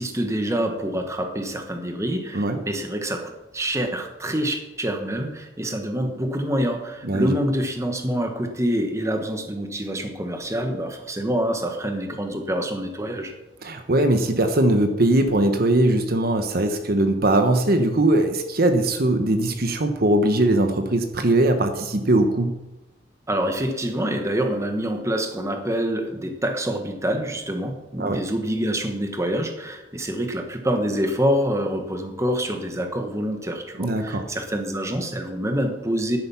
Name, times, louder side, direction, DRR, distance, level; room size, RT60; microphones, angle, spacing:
voice 1, 0.0-13.3 23.3-36.2, equal, 15° right, 5 dB, 1.3 m, -26 dB
voice 2, 13.6-22.5 28.0-28.2 33.8-34.3, right 1 dB, 55° right, 7 dB, 1.0 m, -20 dB
10.5 x 9.0 x 5.6 m, 1.0 s
head